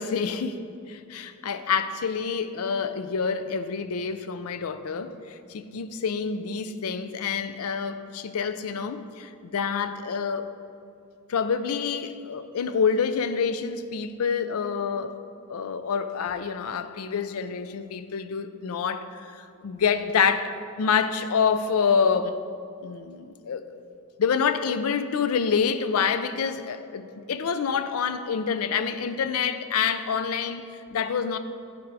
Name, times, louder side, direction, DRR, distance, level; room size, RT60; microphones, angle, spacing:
voice 1, 0.0-10.5 11.3-15.2 15.5-22.4 22.8-23.6 24.2-31.4, left 6 dB, 75° left, 11 dB, 0.4 m, -27 dB
10.5 x 3.8 x 4.7 m, 2.5 s
head